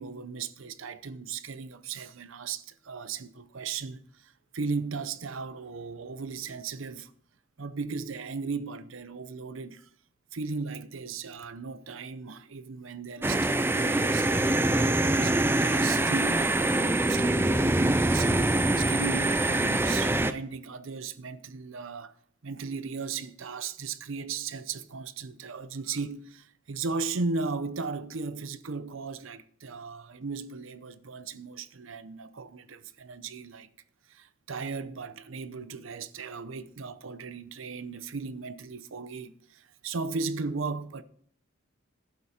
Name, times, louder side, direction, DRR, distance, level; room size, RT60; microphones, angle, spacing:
voice 1, 0.0-7.1 7.6-9.9 10.3-22.1 22.4-33.7 34.1-41.0, right 4 dB, 80° right, 0.7 m, -36 dB
sound 1, 13.2-20.3, right 2 dB, 10° right, 0.4 m, -24 dB
11.5 x 8.4 x 4.3 m
head